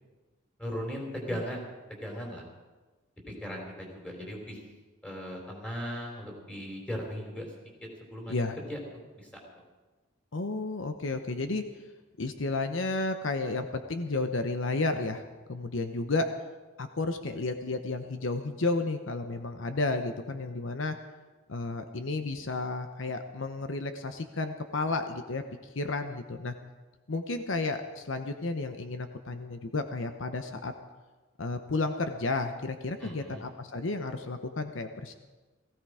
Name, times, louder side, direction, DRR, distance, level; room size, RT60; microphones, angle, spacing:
voice 1, 0.6-1.7 2.0-2.4 3.3-4.6 5.0-7.5 8.0-8.4 8.7-8.8 9.2-9.3 33.0-33.4, equal, 5° left, 0 dB, 3.9 m, -37 dB
voice 2, 10.3-11.6 12.2-15.2 15.5-16.3 16.8-21.0 21.5-25.4 25.7-26.5 27.1-30.7 31.4-35.1, left 3 dB, 70° left, 7 dB, 0.9 m, -32 dB
17.5 x 15.5 x 4.9 m, 1.3 s
head